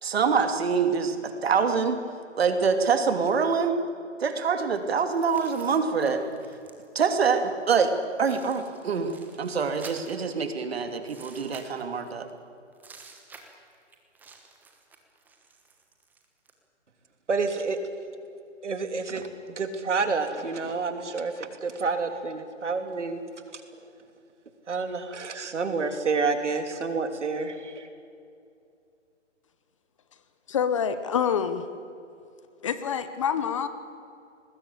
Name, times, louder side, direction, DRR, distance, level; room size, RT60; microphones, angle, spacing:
voice 1, 0.0-2.0 2.4-3.8 4.2-6.2 6.9-9.1 9.4-12.3, right 5 dB, 55° right, 8 dB, 2.8 m, -25 dB
sound 1, 5.0-7.0 7.9-8.0 8.2-10.5 11.0-12.3 12.7-16.5, right 4 dB, 5° right, 1.2 m, -51 dB
voice 2, 17.3-17.8 18.6-23.2 23.5-23.6 24.7-27.9, right 4 dB, 70° right, 7 dB, 3.2 m, -29 dB
voice 3, 30.5-31.7 32.6-33.7, left 7 dB, 25° left, 12 dB, 0.9 m, -26 dB
23.5 x 20.0 x 8.3 m, 2.5 s
hypercardioid pair, 155°, 37 cm